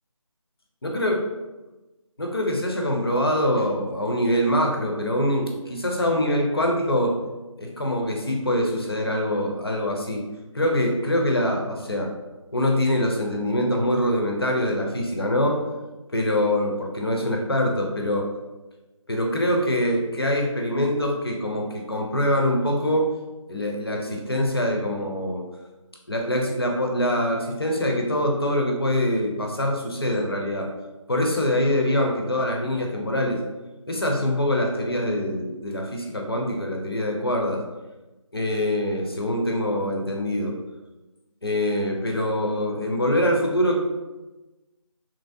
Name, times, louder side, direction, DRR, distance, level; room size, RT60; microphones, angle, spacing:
voice 1, 0.8-1.2 2.2-7.2 7.6-10.2 10.5-12.1 12.5-15.6 16.1-18.3 19.1-23.1 23.5-25.4 26.1-30.7 31.1-33.4 33.9-37.6 38.3-40.5 41.4-43.8, left 1 dB, 45° left, 1 dB, 0.5 m, -24 dB
3.0 x 2.6 x 2.4 m, 1.1 s
figure-of-eight pair, 165°, 17 cm